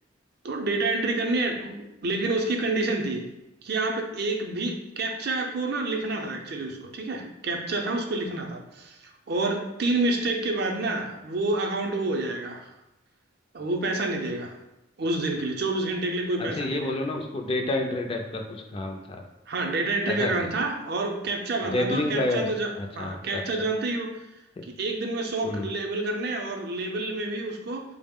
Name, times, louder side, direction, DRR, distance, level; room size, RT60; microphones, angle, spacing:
voice 1, 0.4-3.2 3.6-9.0 9.3-12.7 13.5-14.5 15.0-17.0 19.5-24.1 24.8-27.8, right 2 dB, 55° right, 2 dB, 0.5 m, -28 dB
voice 2, 16.4-19.2 20.1-20.5 21.6-22.5 22.8-23.4 24.6-24.7 25.4-25.7, left 2 dB, 30° left, 3 dB, 0.3 m, -29 dB
4.0 x 2.0 x 3.5 m, 0.91 s
head